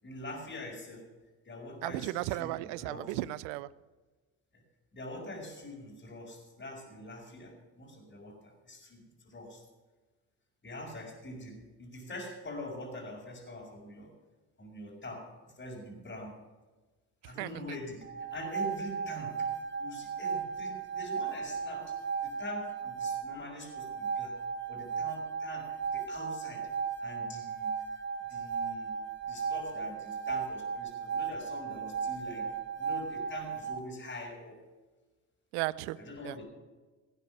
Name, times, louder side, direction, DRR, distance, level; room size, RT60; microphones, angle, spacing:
voice 1, 0.0-1.1 1.4-3.1 4.5-4.6 4.9-9.6 10.6-14.1 14.6-16.3 17.2-19.5 19.8-24.4 24.7-26.7 27.0-27.8 28.3-29.0 29.2-32.5 32.8-34.6 36.0-36.4, left 1 dB, 25° left, -4 dB, 4.8 m, -44 dB
voice 2, 1.8-3.7 17.4-17.6 35.5-36.0 36.2-36.3, right 17 dB, 80° right, 19 dB, 0.6 m, -35 dB
sound 1, 18.0-33.8, right 6 dB, 25° right, 1.2 m, -36 dB
17.5 x 9.1 x 6.0 m, 1.2 s
hypercardioid pair, 60°, 40 cm